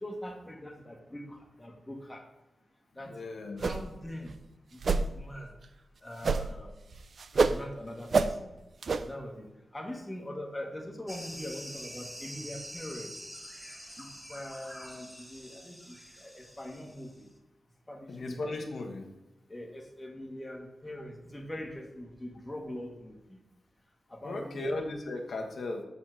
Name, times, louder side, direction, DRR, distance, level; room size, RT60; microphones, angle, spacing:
voice 1, 0.0-2.2 2.9-3.1 3.6-4.3 4.7-5.5 6.0-6.7 7.3-8.6 9.0-13.2 14.0-17.3 17.9-18.4 19.5-23.4 24.1-24.6, left 1 dB, 15° left, 1 dB, 1.6 m, -42 dB
voice 2, 3.1-3.6 18.1-19.1 24.2-25.8, left 2 dB, 65° left, 2 dB, 1.3 m, -36 dB
sound 1, 3.6-4.0 4.3-4.4 4.8-5.1 6.2-6.6 6.9-7.6 8.1-8.3 8.8-9.0, right 4 dB, 55° right, 0.5 m, -26 dB
sound 2, 11.1-17.2, equal, 5° right, 1.1 m, -46 dB
7.3 x 4.1 x 6.3 m, 1.0 s
wide cardioid pair, 115°, 0 cm